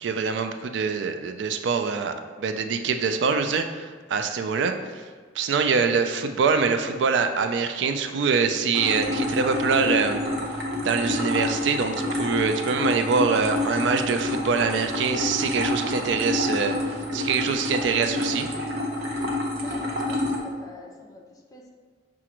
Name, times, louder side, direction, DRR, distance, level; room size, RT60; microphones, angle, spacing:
voice 1, 0.0-4.7 5.4-10.2 10.8-16.7 17.1-18.5, right 5 dB, 80° right, 7 dB, 0.3 m, -24 dB
sound 1, 8.7-20.4, left 1 dB, 60° right, 0.7 m, -28 dB
voice 2, 19.6-21.7, left 2 dB, 20° left, -1 dB, 0.5 m, -46 dB
5.8 x 2.5 x 2.9 m, 1.5 s
head